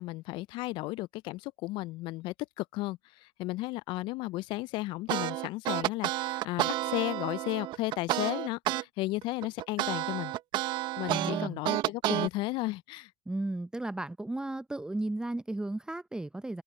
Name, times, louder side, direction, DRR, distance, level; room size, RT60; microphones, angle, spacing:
voice 1, 0.0-10.3 11.0-13.1, left 20 dB, 55° left, 0.5 m, -34 dB
sound 1, 5.1-8.8 9.2-12.3, right 15 dB, 55° right, 1.2 m, -30 dB
voice 2, 11.1-11.6 13.3-16.6, right 2 dB, 10° right, 0.7 m, -34 dB
hypercardioid pair, 80°, 10 cm